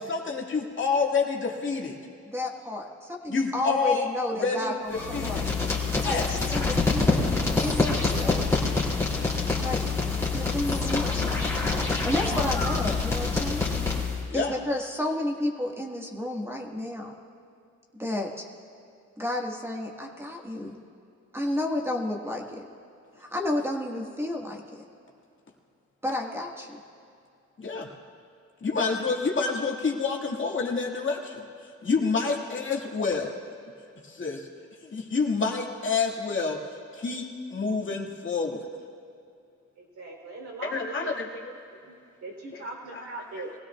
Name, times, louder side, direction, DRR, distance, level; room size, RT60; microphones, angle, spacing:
voice 1, 0.0-2.0 3.3-4.1 4.4-5.4 6.0-6.3 14.3-14.5 27.6-27.9 28.6-31.4 31.8-33.4 34.0-34.5 34.9-36.6 36.9-38.7 40.6-41.5 42.5-42.6 42.9-43.0, left 4 dB, 40° left, -1 dB, 2.1 m, -28 dB
voice 2, 2.3-5.4 6.0-8.5 9.6-9.8 10.3-11.1 12.0-13.7 14.3-17.1 17.9-18.5 19.2-20.8 21.3-22.6 23.2-24.8 26.0-26.8, left 1 dB, 10° right, 0 dB, 1.7 m, -31 dB
sound 1, 4.9-14.3, left 3 dB, 10° left, 2.9 m, -26 dB
voice 3, 32.0-32.3 39.8-41.2 41.8-43.5, right 3 dB, 60° right, 0 dB, 3.6 m, -41 dB
23.0 x 16.5 x 2.4 m, 2.5 s
cardioid pair, 90°, 30 cm